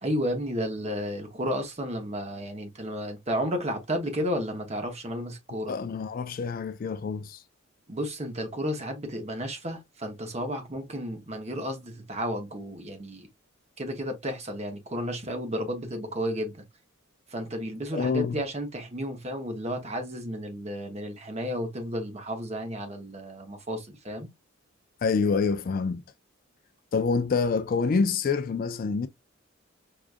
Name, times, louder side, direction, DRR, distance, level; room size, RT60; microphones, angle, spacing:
voice 1, 0.0-5.7 7.9-13.3 13.8-16.6 17.3-24.3, equal, 30° right, 0.9 m, -32 dB
voice 2, 5.7-7.4 17.9-18.4 25.0-26.0 26.9-29.1, left 5 dB, 45° left, 0.3 m, -26 dB
4.8 x 2.4 x 2.4 m
head